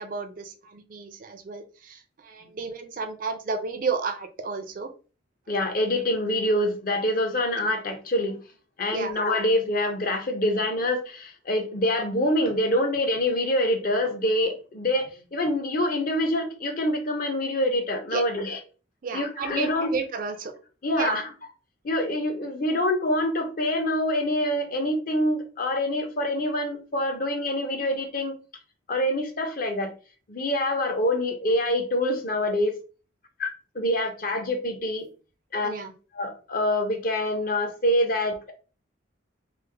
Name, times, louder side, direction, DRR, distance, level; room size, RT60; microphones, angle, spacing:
voice 1, 0.0-4.9 8.9-9.2 18.1-18.2 19.0-20.5 21.0-21.2 35.6-35.9, right 4 dB, 45° right, 6 dB, 0.4 m, -32 dB
voice 2, 5.5-8.4 8.8-18.6 19.1-19.9 20.8-21.2 21.8-28.4 28.9-29.9 30.3-32.8 33.4-35.1 35.5-35.7 36.2-38.5, left 1 dB, 45° left, 5 dB, 0.6 m, -25 dB
3.2 x 2.1 x 3.3 m, 0.36 s
head